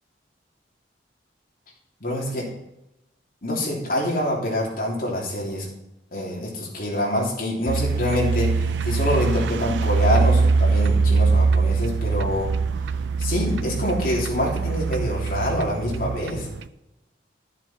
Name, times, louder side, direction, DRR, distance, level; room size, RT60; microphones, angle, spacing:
voice 1, 2.0-2.5 3.4-5.6 6.1-12.5 13.2-16.5, left 1 dB, 50° left, -3 dB, 3.1 m, -26 dB
sound 1, 7.7-16.7, right 4 dB, 80° right, 0.4 m, -22 dB
12.5 x 7.4 x 4.4 m, 0.90 s
head